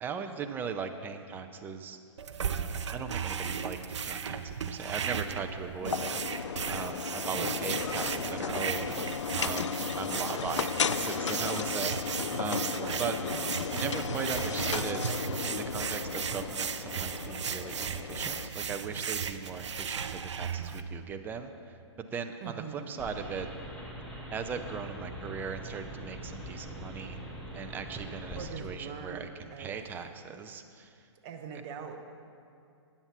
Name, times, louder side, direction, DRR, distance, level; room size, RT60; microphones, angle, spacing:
voice 1, 0.0-2.0 2.9-3.8 4.0-6.3 6.7-8.8 9.3-9.7 9.9-12.7 13.0-13.1 13.7-15.0 15.4-23.5 24.3-27.2 27.5-30.9, right 6 dB, 15° right, 7 dB, 0.4 m, -38 dB
sound 1, 2.2-20.8, right 7 dB, 75° right, 0.5 m, -35 dB
sound 2, 5.9-18.5, left 7 dB, 80° left, 0.4 m, -35 dB
voice 2, 7.4-8.4 9.0-9.1 9.3-10.0 12.7-13.7 22.4-23.0 28.3-29.8 31.2-32.0, right 6 dB, 35° right, 4 dB, 0.8 m, -43 dB
sound 3, 23.0-28.4, right 1 dB, 5° left, 1.7 m, -42 dB
9.6 x 7.1 x 5.7 m, 2.4 s
hypercardioid pair, 125°, 15 cm